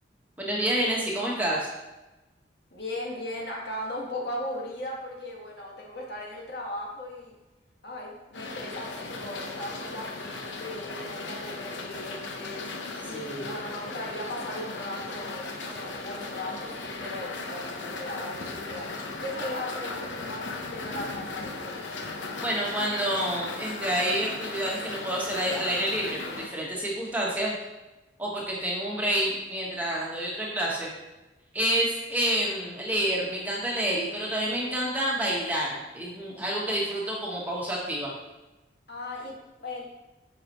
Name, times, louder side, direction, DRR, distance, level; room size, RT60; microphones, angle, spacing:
voice 1, 0.4-1.7 13.1-13.5 22.4-27.5 28.2-30.9 31.5-38.1, right 1 dB, 10° right, -4 dB, 1.5 m, -28 dB
voice 2, 2.7-7.3 7.8-12.7 13.0-18.9 19.2-21.8 38.9-39.8, left 1 dB, 65° left, -2 dB, 1.9 m, -37 dB
sound 1, 8.3-26.5, left 3 dB, 90° left, 1.0 m, -37 dB
9.7 x 6.6 x 3.1 m, 1.1 s
head